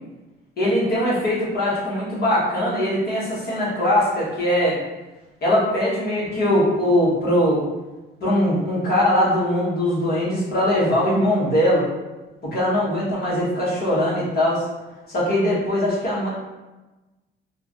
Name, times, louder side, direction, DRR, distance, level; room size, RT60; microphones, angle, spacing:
voice 1, 0.6-4.8 5.4-7.6 8.2-11.9 12.4-14.7 15.1-16.3, left 1 dB, 55° left, -7 dB, 1.3 m, -21 dB
3.2 x 2.3 x 2.5 m, 1.1 s
cardioid pair, 90°, 20 cm